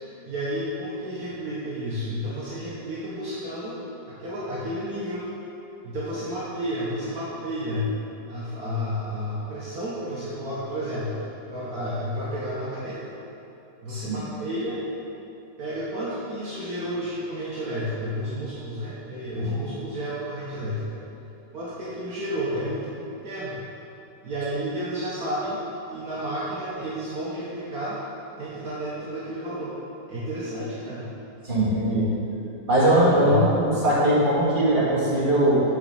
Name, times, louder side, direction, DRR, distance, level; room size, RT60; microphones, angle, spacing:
voice 1, 0.2-3.8 4.1-5.2 5.8-7.9 8.3-13.0 13.8-14.8 15.6-20.9 21.5-22.9 23.2-23.6 24.2-25.6 25.9-28.0 28.4-29.7 30.1-31.0 33.2-33.4, equal, 60° right, -8 dB, 1.6 m, -31 dB
voice 2, 31.4-32.1 32.7-35.5, right 1 dB, 30° right, -8 dB, 2.0 m, -21 dB
6.3 x 5.1 x 6.8 m, 2.9 s
omnidirectional pair, 1.9 m